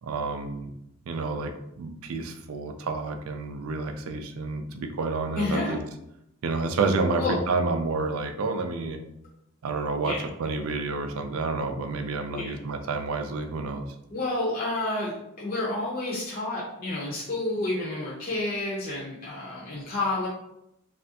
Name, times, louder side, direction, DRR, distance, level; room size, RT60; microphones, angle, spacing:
voice 1, 0.0-0.7 1.1-1.5 1.8-5.8 6.4-9.0 9.6-10.1 10.4-13.8, right 3 dB, 80° right, 6 dB, 0.4 m, -29 dB
voice 2, 5.4-5.7 7.1-7.4 10.0-10.2 12.3-12.5 14.1-20.3, left 2 dB, 45° left, -5 dB, 0.6 m, -30 dB
3.3 x 2.4 x 2.7 m, 0.81 s
head